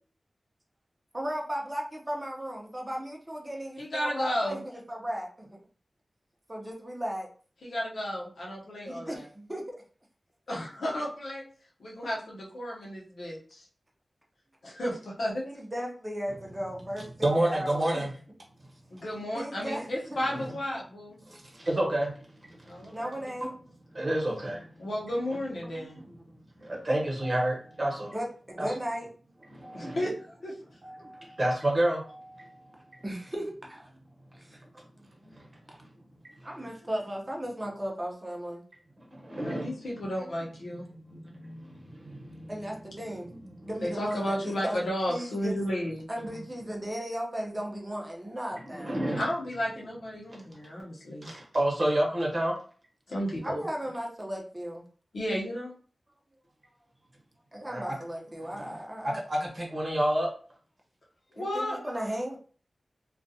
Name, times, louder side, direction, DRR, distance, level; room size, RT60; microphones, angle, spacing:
voice 1, 1.1-5.6 6.5-7.3 8.8-9.8 15.4-18.1 19.3-20.2 22.9-23.5 28.1-29.1 33.0-33.9 34.3-34.6 35.0-35.1 36.4-38.6 42.5-43.3 43.6-44.8 45.1-45.5 46.1-49.0 53.4-54.8 57.5-59.2 61.4-62.4, equal, 25° right, -1 dB, 0.7 m, -36 dB
voice 2, 3.8-4.6 7.6-9.2 10.5-11.4 11.8-13.6 14.6-15.4 18.9-21.2 22.6-23.2 24.8-26.0 29.7-30.5 39.4-40.9 43.8-46.1 49.2-51.3 53.1-53.6 55.1-55.7 61.4-61.8, equal, 85° left, -3 dB, 0.8 m, -33 dB
voice 3, 17.2-18.1 20.3-20.5 21.3-23.0 23.4-23.5 23.9-24.8 25.3-25.4 25.7-26.2 26.6-28.1 28.6-28.7 29.5-30.1 30.8-32.7 35.2-35.5 35.8-35.9 39.1-39.7 40.0-40.1 40.8-42.9 43.3-43.7 48.7-49.2 50.3-50.4 51.2-52.6 57.6-58.0 58.4-58.7 59.0-60.3, right 1 dB, 50° right, -2 dB, 1.0 m, -30 dB
2.4 x 2.3 x 2.7 m, 0.42 s
cardioid pair, 45°, 0 cm